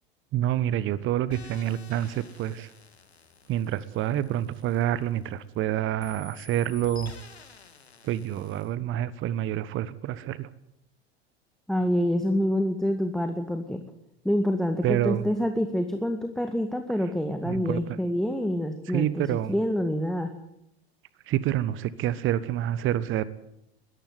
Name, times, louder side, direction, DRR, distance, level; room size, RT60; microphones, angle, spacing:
voice 1, 0.3-2.7 3.5-7.1 8.0-10.5 14.8-15.2 17.4-18.0 18.9-19.5 21.3-23.2, right 12 dB, 40° right, 17 dB, 1.3 m, -27 dB
sound 1, 1.3-5.6 6.0-8.7, left 5 dB, 85° left, 2.2 m, -49 dB
voice 2, 11.7-13.8 14.2-20.3, equal, ahead, 7 dB, 1.9 m, -27 dB
21.0 x 14.5 x 9.5 m, 0.84 s
figure-of-eight pair, 80°, 31 cm